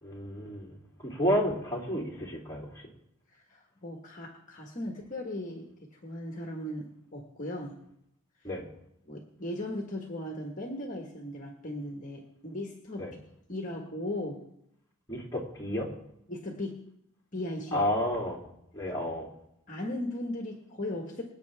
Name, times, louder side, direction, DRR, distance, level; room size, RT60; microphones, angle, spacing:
voice 1, 0.0-0.8 1.0-2.7 8.4-8.6 13.0-13.1 15.1-15.9 17.7-18.4 18.7-19.3, equal, 15° left, -4 dB, 2.9 m, -31 dB
voice 2, 3.3-7.8 8.4-8.5 9.1-13.1 13.5-14.4 16.3-16.9 17.3-17.8 19.7-21.2, left 1 dB, 35° left, 1 dB, 1.5 m, -37 dB
25.0 x 8.7 x 3.5 m, 0.78 s
head